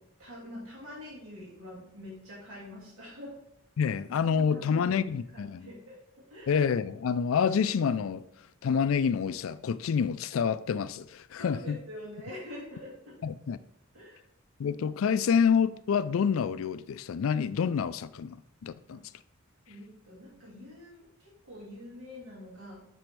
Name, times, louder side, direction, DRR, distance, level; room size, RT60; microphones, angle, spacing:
voice 1, 0.2-3.4 4.3-5.0 5.3-6.0 6.3-6.5 11.4-13.2 13.9-14.2 18.9-19.0 19.7-22.8, left 1 dB, 85° right, 3.0 m, -45 dB
voice 2, 3.8-5.7 6.5-8.2 8.6-11.8 13.2-13.6 14.6-19.0, left 6 dB, 80° left, 0.4 m, -28 dB
6.9 x 4.2 x 4.6 m
head